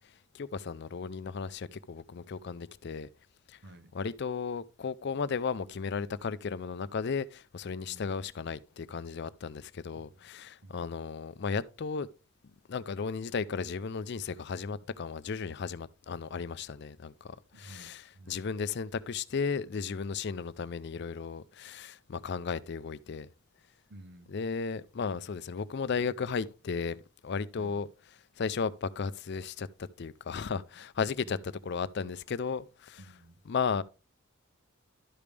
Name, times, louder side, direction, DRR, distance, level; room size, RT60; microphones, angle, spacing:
voice 1, 0.3-3.1 3.5-3.6 3.9-12.1 12.7-18.0 18.3-23.3 24.3-27.0 27.2-27.9 28.4-33.0 33.5-33.8, left 5 dB, 50° left, 0.4 m, -35 dB
voice 2, 3.6-4.0 7.9-8.1 9.9-10.3 10.6-10.9 14.8-14.9 17.5-18.4 23.9-24.5 27.6-27.8 31.1-31.6 33.0-33.4, right 1 dB, 50° right, 0.7 m, -54 dB
12.0 x 5.2 x 3.3 m
head